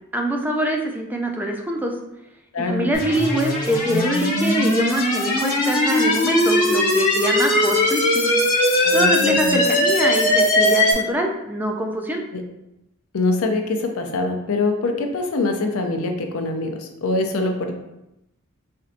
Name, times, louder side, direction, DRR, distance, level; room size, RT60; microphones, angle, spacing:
voice 1, 0.1-1.9 2.7-8.3 8.9-12.2, right 1 dB, 10° right, 1 dB, 0.4 m, -24 dB
voice 2, 2.5-3.0 8.8-9.6 12.3-12.4 13.1-17.7, left 2 dB, 70° left, 4 dB, 0.5 m, -24 dB
sound 1, 2.9-10.9, left 1 dB, 40° left, 1.0 m, -19 dB
4.2 x 2.7 x 2.5 m, 0.88 s
head